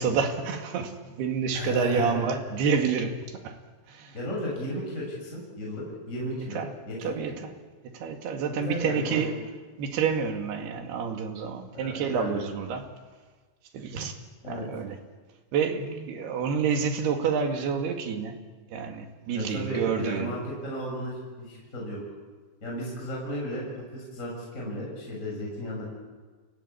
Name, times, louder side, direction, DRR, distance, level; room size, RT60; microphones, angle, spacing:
voice 1, 0.0-3.6 3.9-4.2 6.6-6.7 7.0-7.3 7.8-9.4 9.8-12.9 13.7-14.2 14.5-15.0 15.5-18.4 18.7-20.3, right 6 dB, 65° right, 4 dB, 4.0 m, -28 dB
voice 2, 1.5-2.4 4.1-7.2 8.5-9.3 11.7-12.4 14.4-14.7 19.3-22.0 22.6-25.9, equal, 15° left, -3 dB, 7.0 m, -34 dB
28.5 x 17.5 x 8.6 m, 1.4 s
omnidirectional pair, 5.3 m